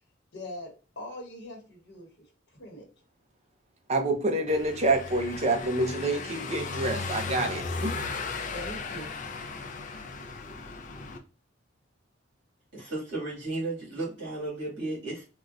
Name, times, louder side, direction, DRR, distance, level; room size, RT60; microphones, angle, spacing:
voice 1, 0.3-2.1 2.5-2.9 8.5-9.1, left 1 dB, 65° left, 1.0 m, -41 dB
voice 2, 3.9-8.0, right 2 dB, 35° right, 0.6 m, -27 dB
Car passing by / Engine, 4.5-11.2, left 4 dB, 40° left, 0.4 m, -36 dB
voice 3, 12.7-15.2, right 2 dB, 65° right, 1.7 m, -34 dB
3.8 x 2.1 x 2.4 m
head